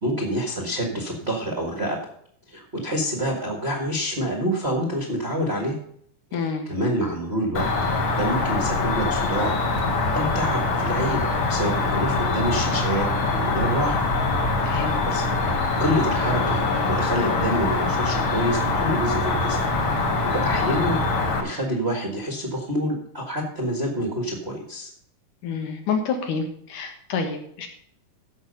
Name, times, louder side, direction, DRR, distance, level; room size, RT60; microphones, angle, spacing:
voice 1, 0.0-2.0 2.5-5.7 6.4-7.7 8.1-9.6 10.1-13.1 13.3-14.1 14.7-15.2 15.8-16.6 16.9-19.6 20.2-21.0 21.4-24.9, equal, 30° right, -1 dB, 1.3 m, -27 dB
voice 2, 6.3-6.7 14.6-15.3 25.4-27.7, left 5 dB, 75° left, 4 dB, 3.0 m, -28 dB
Cricket, 7.5-21.4, left 3 dB, 50° left, 1.7 m, -23 dB
15.0 x 6.0 x 5.4 m, 0.64 s
omnidirectional pair, 3.7 m